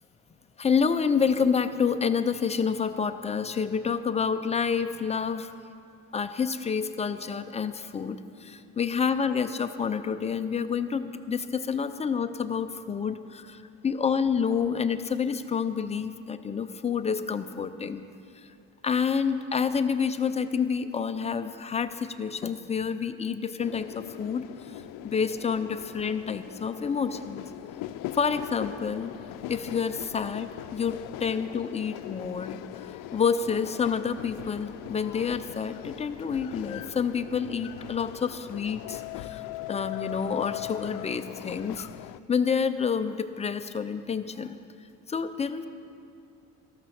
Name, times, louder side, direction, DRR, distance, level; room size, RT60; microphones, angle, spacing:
voice 1, 0.6-5.5 6.1-18.1 18.8-24.4 25.0-27.4 28.1-29.1 29.5-32.6 33.1-39.4 39.7-41.9 42.3-44.6 45.1-45.7, left 6 dB, 20° left, 9 dB, 0.5 m, -28 dB
sound 1, 23.6-42.2, left 15 dB, 85° left, 0.5 m, -40 dB
14.0 x 13.5 x 5.8 m, 2.5 s
cardioid pair, 160°, 32 cm